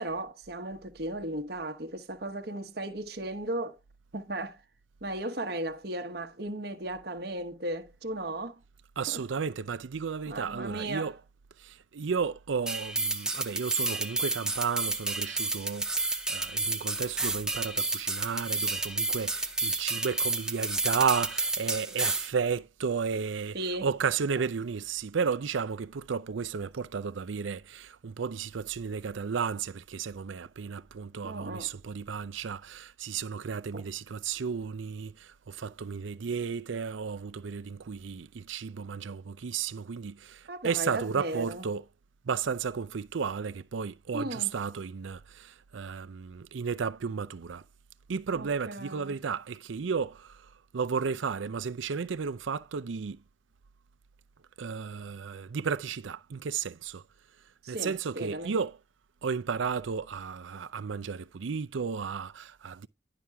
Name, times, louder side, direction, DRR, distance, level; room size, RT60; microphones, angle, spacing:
voice 1, 0.0-3.8 4.1-4.6 5.0-8.6 9.1-9.2 10.3-11.1 23.5-23.9 31.2-31.7 33.7-33.8 40.5-41.6 44.1-44.6 48.3-49.2 57.6-58.5, right 1 dB, 55° right, 1.1 m, -36 dB
voice 2, 9.0-11.1 11.6-23.6 23.8-41.8 42.3-47.6 48.1-50.5 50.7-53.2 54.6-57.0 57.7-58.7 59.2-62.9, right 6 dB, 85° right, 0.5 m, -33 dB
sound 1, 12.7-22.3, right 2 dB, 5° right, 0.6 m, -31 dB
11.0 x 5.8 x 3.4 m
head